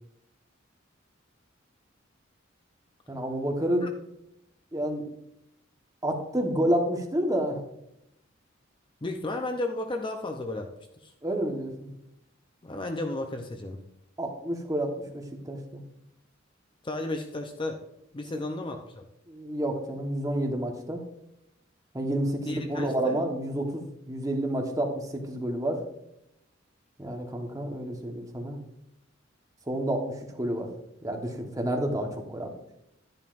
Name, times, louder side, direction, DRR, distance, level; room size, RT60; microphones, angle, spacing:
voice 1, 3.1-3.9 4.7-5.1 6.0-7.6 11.2-11.9 14.2-15.8 19.3-21.0 21.9-25.8 27.0-28.6 29.7-30.7 31.0-32.5, right 1 dB, 15° right, 2 dB, 1.2 m, -29 dB
voice 2, 9.0-11.1 12.6-13.8 16.8-17.8 18.1-19.0 22.5-23.2, left 2 dB, 25° left, 5 dB, 0.6 m, -33 dB
11.0 x 10.5 x 2.5 m, 0.81 s
head